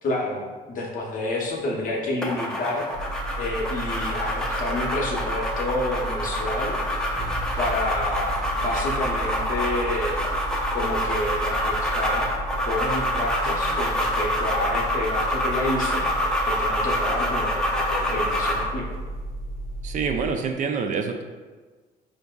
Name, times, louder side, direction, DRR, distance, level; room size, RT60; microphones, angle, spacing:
voice 1, 0.0-2.9 3.4-6.8 7.6-10.2 10.7-12.3 12.7-16.1 16.4-19.0, left 2 dB, 50° left, -1 dB, 0.8 m, -29 dB
sound 1, 2.2-18.7, equal, 5° left, 0.5 m, -27 dB
sound 2, 2.9-20.3, right 1 dB, 90° left, 0.5 m, -34 dB
sound 3, 7.1-17.0, left 1 dB, 75° right, 0.8 m, -41 dB
voice 2, 19.8-21.2, right 5 dB, 50° right, 5 dB, 0.4 m, -26 dB
4.6 x 2.6 x 2.3 m, 1.4 s
cardioid pair, 110°, 17 cm